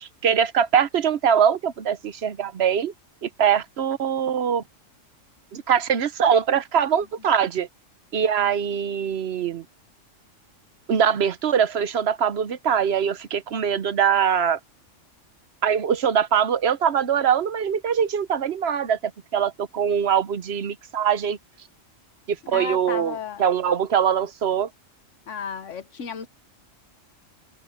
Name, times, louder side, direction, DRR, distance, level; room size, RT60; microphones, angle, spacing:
voice 1, 0.0-2.9 3.2-4.6 5.5-7.7 8.1-9.6 10.9-14.6 15.6-19.0 19.3-21.4 22.3-24.7, right 8 dB, 60° right, 1.0 m, -22 dB
voice 2, 22.5-23.4 25.3-26.3, left 6 dB, 70° left, 1.3 m, -33 dB
omnidirectional pair, 1.3 m